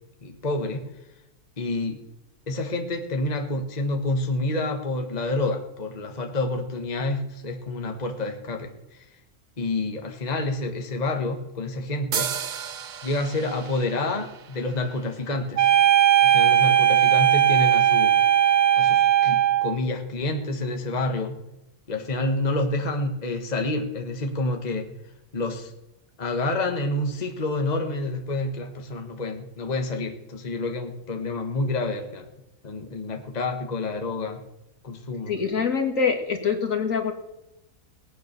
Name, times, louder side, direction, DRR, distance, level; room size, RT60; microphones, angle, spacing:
voice 1, 0.2-0.9 1.6-2.0 2.5-9.0 9.6-12.3 13.0-15.7 16.2-18.2 18.8-21.4 21.9-24.9 25.3-25.7 26.2-32.3 32.6-34.4 34.8-35.4, left 2 dB, 30° left, 4 dB, 1.5 m, -28 dB
sound 1, 12.1-15.7, right 7 dB, 55° right, 0.5 m, -34 dB
sound 2, 15.6-19.8, right 10 dB, 75° right, 1.6 m, -18 dB
voice 2, 35.3-37.1, left 6 dB, 55° left, 4 dB, 2.5 m, -24 dB
19.5 x 9.5 x 6.8 m, 0.95 s
omnidirectional pair, 1.6 m